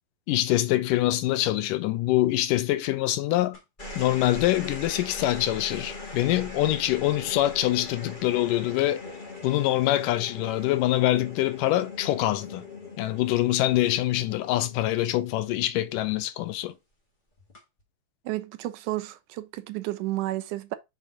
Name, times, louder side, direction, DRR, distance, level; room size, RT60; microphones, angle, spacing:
voice 1, 0.3-3.6 4.0-9.1 9.4-12.7 13.0-16.7, left 15 dB, 85° left, 2.3 m, -25 dB
sound 1, 3.5-16.1 17.4-17.8, left 3 dB, 20° left, 1.5 m, -41 dB
voice 2, 18.3-20.8, right 17 dB, 80° right, 2.0 m, -32 dB
6.7 x 4.1 x 3.9 m
omnidirectional pair, 3.8 m